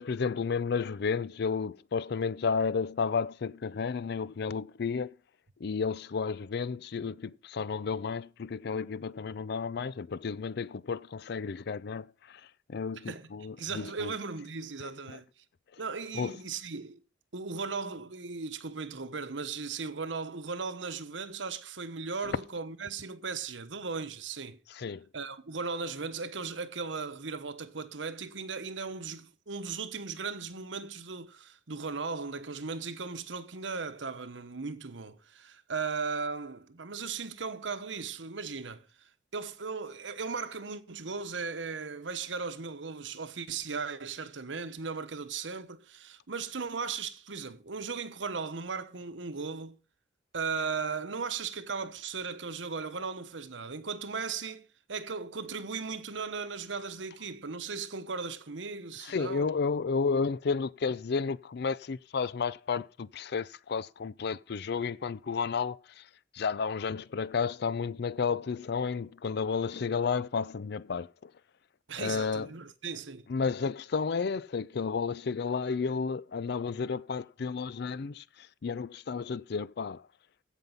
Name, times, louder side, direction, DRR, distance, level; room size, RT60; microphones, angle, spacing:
voice 1, 0.0-5.1 5.6-12.4 12.7-14.1 16.1-16.4 24.7-25.0 59.0-66.0 66.3-71.3 72.0-72.5 73.3-78.2 78.6-80.0, left 5 dB, 60° left, 0.4 m, -32 dB
voice 2, 13.0-13.3 13.6-15.3 15.8-17.0 17.3-24.6 25.1-38.8 39.3-49.8 50.3-59.5 71.9-73.3, right 5 dB, 85° right, 1.1 m, -37 dB
16.0 x 5.4 x 5.5 m
head